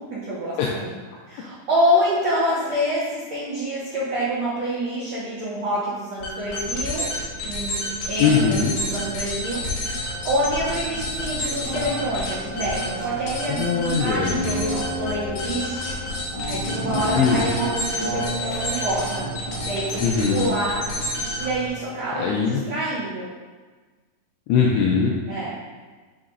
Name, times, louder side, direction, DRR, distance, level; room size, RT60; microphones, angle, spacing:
voice 1, 0.1-0.9 1.3-7.1 7.4-9.6 10.2-15.9 16.5-19.2 19.6-20.8 21.4-23.3 25.3-25.5, equal, 75° right, -10 dB, 1.5 m, -27 dB
sound 1, 6.2-21.7, left 1 dB, 65° left, 2.4 m, -30 dB
sound 2, 8.0-22.7, right 1 dB, 45° left, 1.9 m, -33 dB
voice 2, 8.2-8.8 13.5-14.4 17.2-17.4 20.0-20.5 22.2-22.6 24.5-25.1, left 6 dB, 85° left, -2 dB, 2.5 m, -20 dB
10.0 x 3.8 x 2.5 m, 1.4 s
omnidirectional pair, 5.2 m